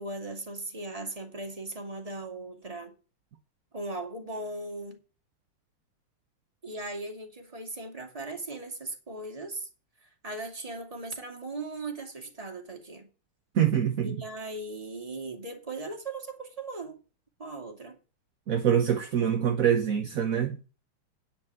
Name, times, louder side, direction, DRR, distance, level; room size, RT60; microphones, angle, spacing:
voice 1, 0.0-2.9 3.7-5.0 6.6-9.7 10.0-13.1 14.0-17.0 17.4-18.0, right 2 dB, 15° right, 2.3 m, -38 dB
voice 2, 13.5-14.2 18.5-20.6, right 9 dB, 55° right, 1.0 m, -25 dB
9.7 x 5.9 x 7.8 m
omnidirectional pair, 2.4 m